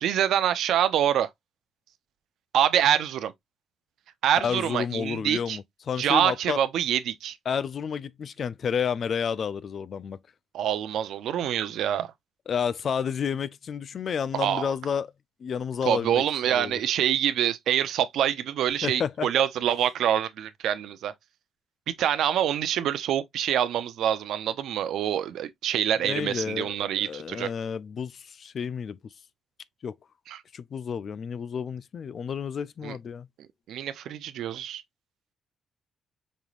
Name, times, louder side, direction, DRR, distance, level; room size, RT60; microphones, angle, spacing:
voice 1, 0.0-1.3 2.5-3.3 4.2-5.6 6.0-7.4 10.5-12.1 14.3-14.7 15.8-21.1 22.0-27.5 30.3-30.4 32.8-33.0 33.7-34.8, right 10 dB, 75° right, 0.6 m, -26 dB
voice 2, 4.4-6.6 7.5-10.2 12.5-15.1 15.4-16.2 16.5-16.8 18.8-19.3 26.0-29.0 29.8-29.9 30.5-33.3, left 7 dB, 50° left, 0.4 m, -30 dB
5.3 x 3.1 x 2.5 m
cardioid pair, 90°, 0 cm